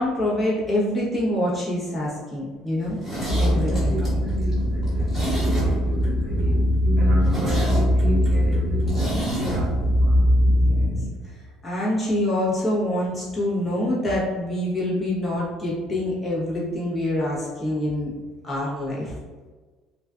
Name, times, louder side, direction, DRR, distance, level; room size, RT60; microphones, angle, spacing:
voice 1, 0.0-3.0 3.4-4.1 10.6-10.9 11.2-18.1 18.4-19.1, left 1 dB, 20° left, -7 dB, 0.9 m, -26 dB
Zipper (clothing), 2.8-6.1 6.4-6.5 6.8-6.9 7.2-9.6 9.9-10.0, right 1 dB, ahead, 1.2 m, -30 dB
sound 1, 3.3-11.1, equal, 55° left, 0.4 m, -21 dB
voice 2, 3.5-9.1 9.4-10.1, right 1 dB, 55° right, -4 dB, 0.9 m, -30 dB
2.4 x 2.3 x 2.3 m, 1.4 s
cardioid pair, 120°, 0 cm